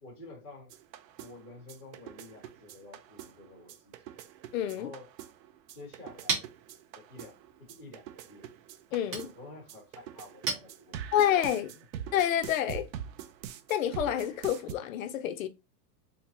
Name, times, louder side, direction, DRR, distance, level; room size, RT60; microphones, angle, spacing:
voice 1, 0.0-0.7 1.2-4.1 4.7-5.1 5.7-6.5 6.9-8.5 9.3-11.2 11.7-11.8, left 2 dB, 10° right, 0.3 m, -50 dB
sound 1, 0.7-14.7, right 9 dB, 80° right, 0.7 m, -45 dB
voice 2, 4.5-4.9 8.9-9.3 11.1-11.7 12.1-12.9 13.7-15.5, left 11 dB, 55° left, 0.5 m, -28 dB
Chink clink, 5.7-11.4, right 4 dB, 55° right, 1.7 m, -40 dB
3.6 x 2.9 x 2.8 m
supercardioid pair, 175°, 50 cm